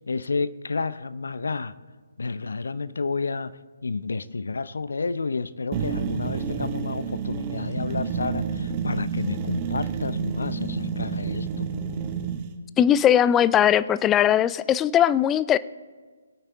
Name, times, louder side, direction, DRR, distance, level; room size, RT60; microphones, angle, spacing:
voice 1, 0.1-1.8 2.2-11.7, left 4 dB, 65° left, 16 dB, 0.6 m, -30 dB
sound 1, 5.7-12.5, right 6 dB, 25° right, 1.1 m, -29 dB
voice 2, 12.8-15.6, left 10 dB, 15° left, 18 dB, 0.3 m, -19 dB
22.0 x 8.9 x 3.5 m, 1.5 s
figure-of-eight pair, 140°, 0 cm